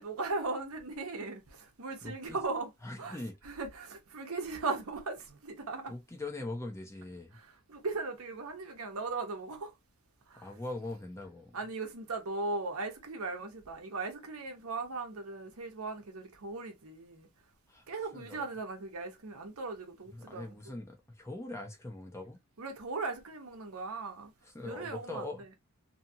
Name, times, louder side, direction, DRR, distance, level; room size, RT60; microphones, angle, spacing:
voice 1, 0.0-2.7 3.0-5.9 7.3-9.7 10.3-10.5 11.5-17.3 17.9-20.8 22.6-24.3 24.6-25.5, right 3 dB, 70° right, 0.8 m, -38 dB
voice 2, 2.0-2.4 2.8-3.4 5.9-7.4 10.4-11.5 17.7-17.8 18.1-18.5 20.1-22.4 24.5-25.4, left 2 dB, 10° left, 0.5 m, -41 dB
2.8 x 2.4 x 2.7 m
head